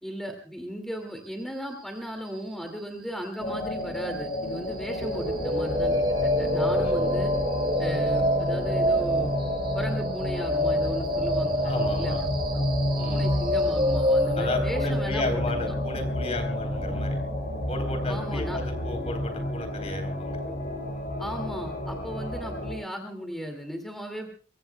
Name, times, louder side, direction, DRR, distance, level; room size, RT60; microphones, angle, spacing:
voice 1, 0.0-5.9 6.2-7.3 7.8-9.3 9.7-12.2 12.5-12.6 13.1-15.2 15.7-15.8 18.1-18.6 21.2-24.3, equal, ahead, 3 dB, 2.2 m, -36 dB
sound 1, 3.4-22.7, left 1 dB, 50° left, 4.7 m, -30 dB
sound 2, 5.0-19.0, equal, 30° right, 3.1 m, -28 dB
voice 2, 6.7-7.0 11.6-12.2 13.0-13.3 14.3-17.2 17.7-20.4, left 2 dB, 35° left, 7 dB, 3.7 m, -33 dB
23.5 x 23.5 x 2.3 m, 0.38 s
head